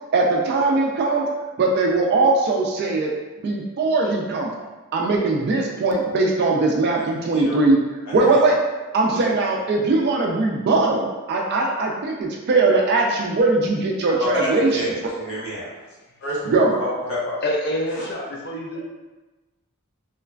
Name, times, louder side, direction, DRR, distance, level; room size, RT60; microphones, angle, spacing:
voice 1, 0.1-1.2 1.6-3.1 3.4-4.5 4.9-7.8 8.1-8.6 8.9-14.9 16.5-16.7, right 3 dB, 45° right, -1 dB, 0.3 m, -20 dB
voice 2, 8.1-8.4 9.1-9.2 14.2-14.3 14.7-14.9 15.2-15.7 16.2-16.5 16.8-17.4, equal, 65° left, -8 dB, 1.0 m, -29 dB
voice 3, 17.4-18.8, left 1 dB, 45° left, -1 dB, 0.4 m, -26 dB
3.0 x 2.1 x 2.4 m, 1.2 s
head